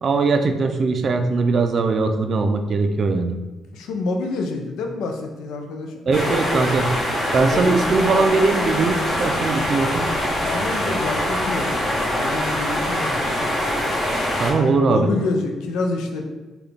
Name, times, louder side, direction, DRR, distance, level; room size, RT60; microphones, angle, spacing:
voice 1, 0.0-3.4 6.1-6.9 7.3-10.1 14.4-15.1, right 3 dB, 50° right, 6 dB, 0.3 m, -20 dB
voice 2, 3.7-6.0 7.5-7.8 10.4-13.5 14.5-16.2, left 3 dB, 90° left, 3 dB, 0.4 m, -28 dB
sound 1, 6.1-14.5, left 1 dB, 45° left, 1.3 m, -23 dB
3.8 x 2.3 x 3.4 m, 1.2 s
cardioid pair, 90°, 0 cm